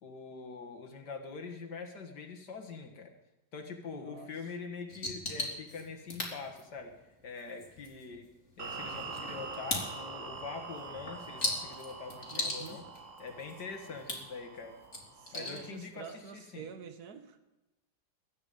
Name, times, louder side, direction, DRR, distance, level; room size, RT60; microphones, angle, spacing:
voice 1, 0.0-3.1 3.5-6.9 7.2-8.3 8.6-12.8 13.2-14.8 15.3-16.7, left 4 dB, 90° left, 3 dB, 2.4 m, -44 dB
voice 2, 3.9-4.3 12.3-12.8 15.2-17.5, right 6 dB, 70° right, 10 dB, 1.8 m, -47 dB
sound 1, 4.9-16.0, left 2 dB, 45° left, 3.7 m, -41 dB
sound 2, 8.6-15.8, right 4 dB, 50° right, 1.8 m, -45 dB
22.0 x 9.4 x 5.4 m, 1.0 s
omnidirectional pair, 1.7 m